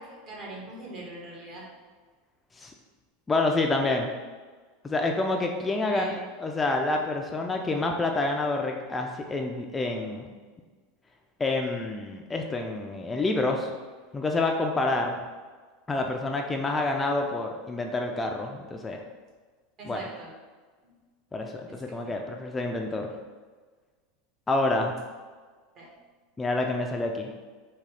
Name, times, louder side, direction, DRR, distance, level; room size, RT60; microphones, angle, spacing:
voice 1, 0.0-1.6 5.9-6.1 19.8-20.3 20.8-20.9 22.0-22.1 25.8-25.9, right 2 dB, 45° right, -3 dB, 1.2 m, -41 dB
voice 2, 3.3-4.1 4.8-10.3 11.4-13.7 14.1-15.2 15.9-19.0 19.8-20.0 21.3-23.1 24.5-24.9 26.4-27.3, left 2 dB, 20° left, 2 dB, 0.3 m, -28 dB
3.6 x 2.3 x 3.3 m, 1.4 s
hypercardioid pair, 105°, 0 cm